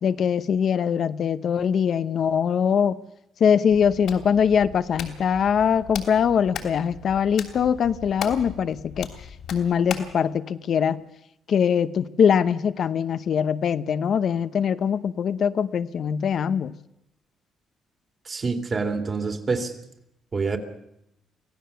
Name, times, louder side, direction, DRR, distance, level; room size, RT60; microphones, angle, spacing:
voice 1, 0.0-3.0 3.4-9.1 9.5-11.0 11.5-16.7, left 7 dB, 60° left, 12 dB, 0.8 m, -22 dB
Hands, 3.7-10.2, left 8 dB, 80° left, 3.1 m, -38 dB
voice 2, 18.3-19.7 20.3-20.6, right 4 dB, 40° right, 5 dB, 2.9 m, -26 dB
25.0 x 16.0 x 6.9 m, 0.80 s
cardioid pair, 90°, 0 cm